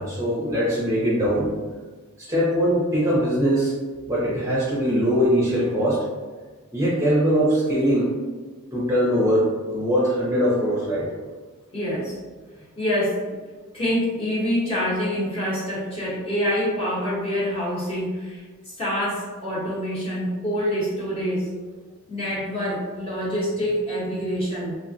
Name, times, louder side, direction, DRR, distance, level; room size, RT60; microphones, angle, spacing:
voice 1, 0.0-1.5 2.2-3.7 4.1-6.0 6.7-8.1 8.7-11.1, equal, 15° right, -8 dB, 0.5 m, -21 dB
voice 2, 11.7-12.2 12.8-13.4 13.7-21.7 22.1-24.8, equal, 25° left, -8 dB, 0.9 m, -26 dB
3.2 x 2.0 x 2.6 m, 1.4 s
head